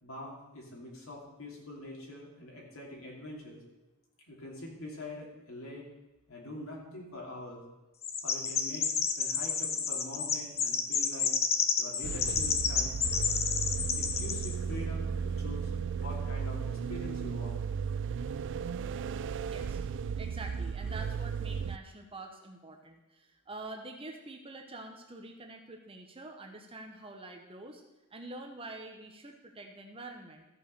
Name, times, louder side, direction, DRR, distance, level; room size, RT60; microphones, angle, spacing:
voice 1, 0.0-3.6 4.3-5.8 6.3-7.6 8.2-8.9 9.2-11.3 11.8-12.9 14.0-17.6, left 1 dB, 65° left, -2 dB, 2.8 m, -44 dB
Chirp tweet, 8.0-14.5, left 6 dB, 30° left, 0.8 m, -30 dB
sound 1, 12.0-21.8, right 6 dB, 60° right, 0.3 m, -35 dB
voice 2, 19.4-27.8 28.1-30.4, right 2 dB, 25° right, 4 dB, 1.0 m, -46 dB
14.0 x 5.4 x 6.7 m, 1.0 s
head